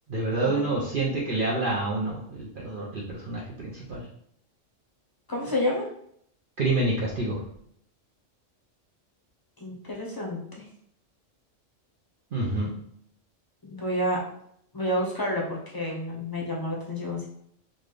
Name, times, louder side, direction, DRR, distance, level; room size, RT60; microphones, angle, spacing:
voice 1, 0.1-4.1 6.6-7.4 12.3-12.7, right 2 dB, 50° right, -4 dB, 0.7 m, -28 dB
voice 2, 5.3-5.9 9.6-10.6 13.6-14.2 14.7-17.3, left 1 dB, 20° left, -2 dB, 0.7 m, -29 dB
4.0 x 2.4 x 3.2 m, 0.67 s
omnidirectional pair, 1.3 m